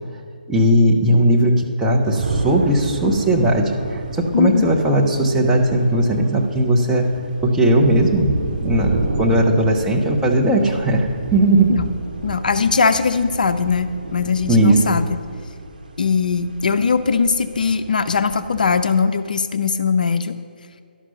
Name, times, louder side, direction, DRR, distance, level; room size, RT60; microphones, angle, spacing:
voice 1, 0.5-7.1 7.4-11.7 14.5-15.0, right 1 dB, 5° right, -2 dB, 0.8 m, -17 dB
sound 1, 2.0-18.8, right 2 dB, 55° right, 1.1 m, -30 dB
voice 2, 4.3-4.7 11.7-11.9 12.2-15.2 16.0-20.3, left 5 dB, 55° left, 10 dB, 0.5 m, -20 dB
11.5 x 6.1 x 5.4 m, 2.4 s
figure-of-eight pair, 140°, 5 cm